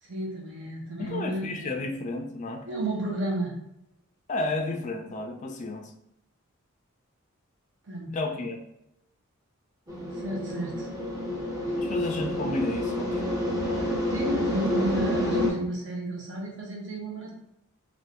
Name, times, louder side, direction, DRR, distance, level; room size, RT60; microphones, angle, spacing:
voice 1, 0.0-1.7 2.7-3.6 7.8-8.4 10.1-10.9 11.7-11.8 13.8-17.3, right 1 dB, 55° right, -1 dB, 0.8 m, -32 dB
voice 2, 1.0-2.7 4.3-5.9 8.1-8.6 11.8-13.3 13.6-13.9, left 2 dB, 35° left, 4 dB, 0.3 m, -32 dB
sound 1, 9.9-15.5, left 1 dB, 15° right, 0.6 m, -29 dB
2.5 x 2.4 x 3.5 m, 0.84 s
head